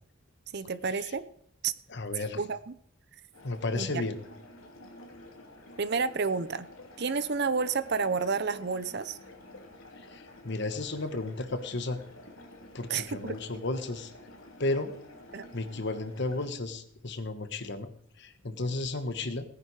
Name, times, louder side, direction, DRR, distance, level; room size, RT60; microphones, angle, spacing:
voice 1, 0.5-1.2 1.6-1.7 2.2-2.7 3.7-4.0 5.8-6.7 7.0-9.2 12.9-13.4 15.3-15.5, right 5 dB, 55° right, 14 dB, 0.7 m, -30 dB
voice 2, 1.9-2.4 3.4-4.2 10.1-12.0 12.7-14.1 14.6-14.9 15.5-17.9 18.2-19.4, left 2 dB, 55° left, 10 dB, 1.3 m, -33 dB
sound 1, 3.3-16.5, left 1 dB, 90° left, 2.7 m, -50 dB
18.5 x 10.0 x 4.8 m, 0.68 s
head